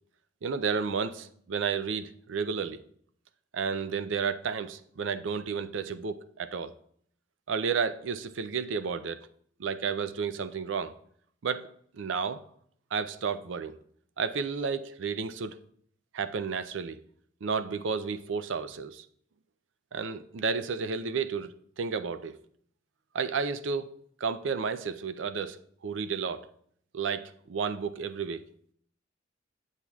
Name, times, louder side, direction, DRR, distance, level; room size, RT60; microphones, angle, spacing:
voice 1, 0.4-2.8 3.5-6.7 7.5-9.2 9.6-10.9 11.4-11.7 11.9-12.4 12.9-13.8 14.2-15.6 16.1-17.0 17.4-19.1 19.9-22.4 23.1-26.4 26.9-28.4, right 5 dB, 75° right, 0.5 m, -32 dB
8.1 x 7.3 x 2.3 m
head